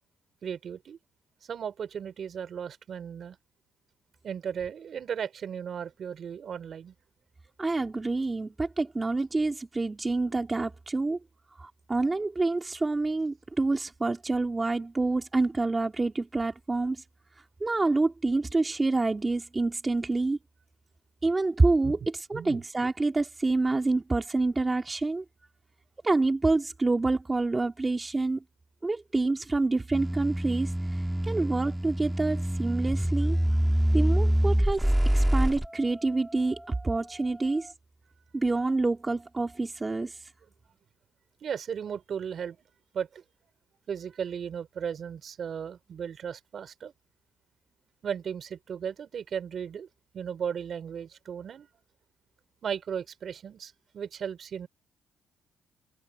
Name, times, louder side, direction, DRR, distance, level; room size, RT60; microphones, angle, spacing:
voice 1, 0.4-1.0 1.5-3.4 4.2-6.9 21.8-22.0 22.3-22.6 41.4-42.6 42.9-43.2 43.9-46.9 48.0-49.9 50.1-51.7 52.6-54.7, right 7 dB, 55° right, 4.1 m, -35 dB
voice 2, 7.6-11.2 11.6-17.0 17.6-20.4 21.2-25.2 26.0-28.4 28.8-30.7 31.2-33.4 33.9-37.7 38.3-40.2, right 3 dB, 20° right, 2.3 m, -27 dB
sound 1, 29.9-35.7, equal, 5° right, 1.4 m, -25 dB
open air
cardioid pair, 90°, 0 cm